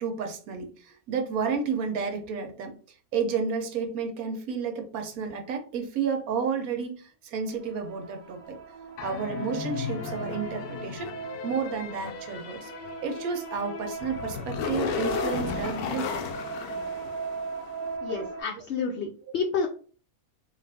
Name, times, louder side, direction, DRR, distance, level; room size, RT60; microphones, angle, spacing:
voice 1, 0.0-2.7 3.1-8.6 9.0-11.2 11.4-12.7 13.0-16.2, right 5 dB, 75° right, 4 dB, 1.2 m, -31 dB
sound 1, 7.5-18.4, right 5 dB, 60° right, 0.6 m, -38 dB
sound 2, 9.0-17.7, left 7 dB, 90° left, 1.1 m, -35 dB
voice 2, 18.0-19.7, left 5 dB, 65° left, 0 dB, 0.7 m, -30 dB
3.7 x 2.4 x 3.3 m, 0.41 s
omnidirectional pair, 1.5 m